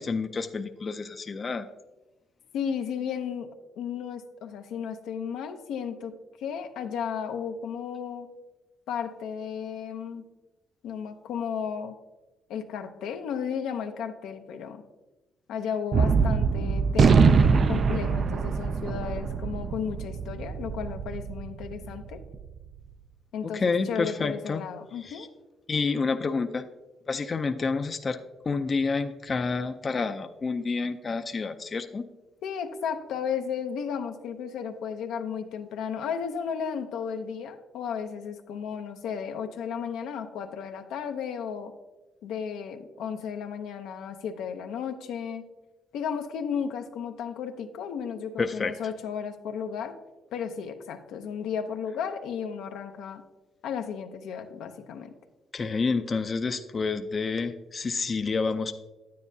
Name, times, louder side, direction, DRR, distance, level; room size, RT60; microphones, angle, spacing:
voice 1, 0.0-1.7 23.4-24.6 25.0-25.3 25.7-26.6 27.1-28.2 28.4-32.0 48.4-48.7 55.5-58.7, left 4 dB, 35° left, 8 dB, 0.4 m, -29 dB
voice 2, 2.5-3.5 3.8-6.1 6.4-8.3 8.9-10.2 10.8-11.9 12.5-14.8 15.5-22.2 23.3-25.3 32.4-41.7 42.2-45.4 45.9-49.9 50.3-53.2 53.6-55.1, left 7 dB, 85° left, 6 dB, 0.7 m, -34 dB
Gunshot gunfire, 15.9-22.5, right 5 dB, 50° right, 0.3 m, -23 dB
9.4 x 9.3 x 2.7 m, 1.1 s
cardioid pair, 90°, 0 cm